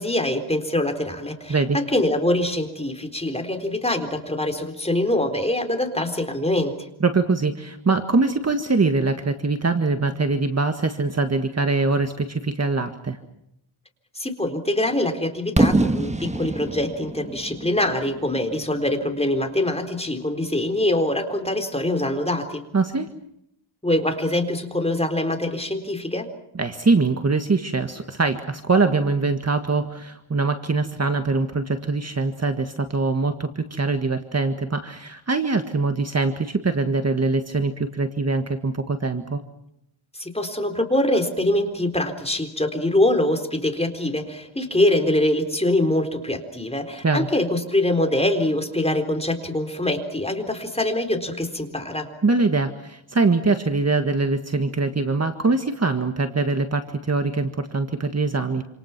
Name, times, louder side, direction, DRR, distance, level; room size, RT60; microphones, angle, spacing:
voice 1, 0.0-6.9 14.1-22.6 23.8-26.3 40.1-52.1, left 1 dB, 10° left, 5 dB, 4.0 m, -24 dB
voice 2, 7.0-13.2 22.7-23.1 26.5-39.4 47.0-47.3 52.2-58.6, right 3 dB, 30° right, 7 dB, 1.7 m, -23 dB
Fireworks, 15.6-19.4, right 2 dB, 15° right, 1.4 m, -25 dB
28.0 x 27.5 x 6.0 m, 0.76 s
wide cardioid pair, 120°, 49 cm